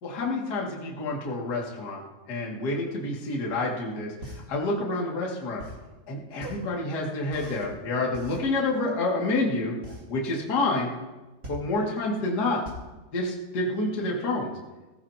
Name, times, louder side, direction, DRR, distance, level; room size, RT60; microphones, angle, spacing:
voice 1, 0.0-2.0 2.3-4.1 4.5-5.6 6.1-9.7 10.1-10.9 11.5-12.6 13.1-14.5, left 2 dB, 30° left, -3 dB, 2.1 m, -28 dB
sound 1, 4.2-14.1, equal, 20° right, 4.8 m, -43 dB
20.5 x 16.5 x 3.0 m, 1.1 s
omnidirectional pair, 5.1 m